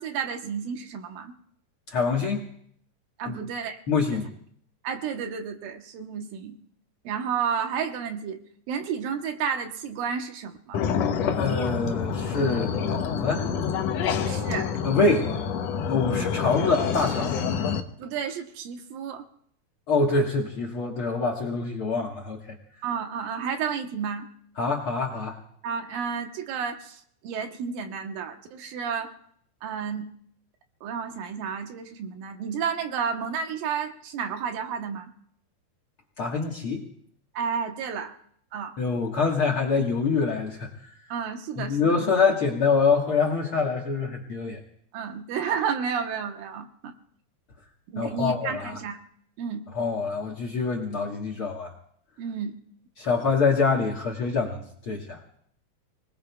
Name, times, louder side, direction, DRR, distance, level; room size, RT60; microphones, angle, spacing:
voice 1, 0.0-1.3 3.2-3.8 4.1-4.2 4.8-6.6 7.0-8.4 8.7-10.8 14.2-14.7 16.0-16.3 18.0-19.2 22.8-24.3 25.6-29.1 29.6-30.1 30.8-35.1 37.3-38.2 38.5-38.8 41.1-42.0 44.9-46.9 47.9-49.0 49.4-49.6 52.2-52.6, right 7 dB, 80° right, 5 dB, 2.8 m, -31 dB
voice 2, 1.9-2.4 3.3-3.4 3.9-4.3 11.3-13.5 14.8-15.3 15.9-17.4 19.9-22.6 24.6-25.4 36.2-36.8 38.8-40.7 41.6-44.6 48.0-48.8 49.8-51.7 53.0-55.2, left 4 dB, 55° left, -1 dB, 1.7 m, -25 dB
sound 1, 10.7-17.8, left 7 dB, 75° left, 1.5 m, -27 dB
30.0 x 19.5 x 2.3 m, 0.65 s
omnidirectional pair, 4.1 m